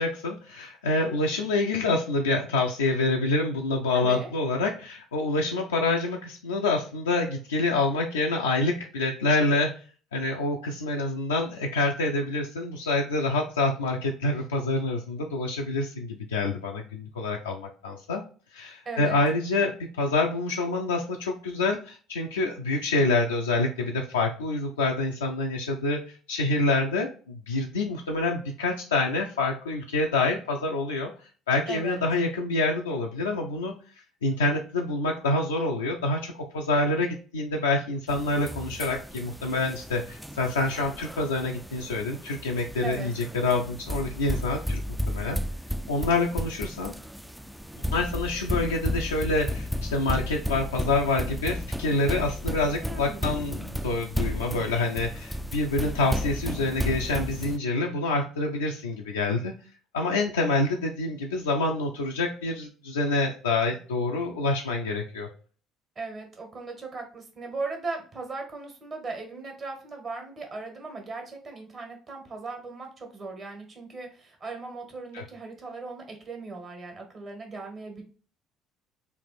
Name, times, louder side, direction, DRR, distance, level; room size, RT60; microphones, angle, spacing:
voice 1, 0.0-9.7 10.1-18.2 18.5-31.1 31.5-33.7 34.2-44.8 45.1-45.4 45.9-46.9 47.9-59.5 59.9-65.3 75.1-75.2, left 2 dB, 85° left, -1 dB, 0.4 m, -27 dB
voice 2, 3.9-4.3 18.8-19.2 31.7-32.0 42.8-43.1 52.8-53.5 65.9-78.0, right 3 dB, 40° right, 3 dB, 1.4 m, -38 dB
sound 1, 38.1-57.6, equal, 5° right, 0.3 m, -33 dB
3.2 x 2.5 x 4.0 m, 0.39 s
hypercardioid pair, 55°, 0 cm